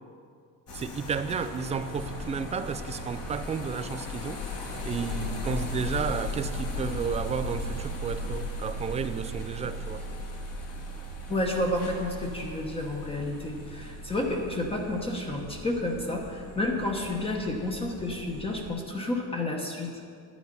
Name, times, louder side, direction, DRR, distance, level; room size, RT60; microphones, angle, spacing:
sound 1, 0.7-18.7, left 1 dB, 40° left, 1.8 m, -37 dB
voice 1, 0.7-4.4 4.8-10.1, right 6 dB, 20° right, 11 dB, 0.3 m, -32 dB
voice 2, 11.3-20.0, left 1 dB, 15° left, 1 dB, 1.1 m, -30 dB
9.6 x 9.5 x 5.4 m, 2.3 s
cardioid pair, 130°, 37 cm